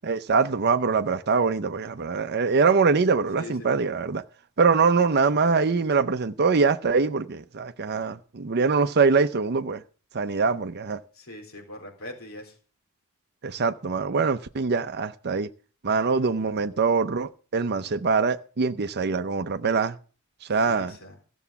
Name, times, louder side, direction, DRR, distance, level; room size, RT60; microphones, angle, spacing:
voice 1, 0.0-4.2 4.6-9.8 10.1-11.0 13.4-15.5 15.8-20.0 20.5-20.9, right 4 dB, 50° right, 0.6 m, -23 dB
voice 2, 3.4-3.7 11.1-12.6 20.7-21.2, left 1 dB, 70° left, 4.0 m, -41 dB
14.5 x 7.1 x 7.0 m
head